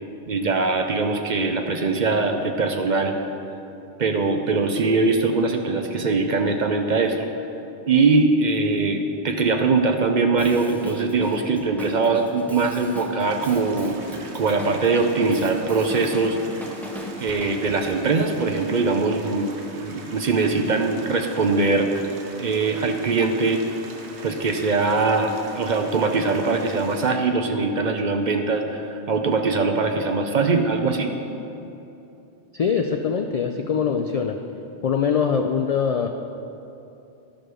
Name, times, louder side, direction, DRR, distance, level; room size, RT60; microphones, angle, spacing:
voice 1, 0.3-3.1 4.0-7.3 7.9-14.0 14.2-16.4 17.2-22.1 22.4-23.6 24.2-31.1, right 3 dB, 50° right, 5 dB, 0.7 m, -22 dB
Drum kit, 10.4-17.9, equal, ahead, 0.5 m, -39 dB
sound 1, 13.2-27.1, right 3 dB, 80° right, 1.2 m, -42 dB
voice 2, 32.5-34.4 34.8-36.1, left 6 dB, 65° left, 4 dB, 0.3 m, -23 dB
11.5 x 5.1 x 6.1 m, 2.9 s
omnidirectional pair, 1.1 m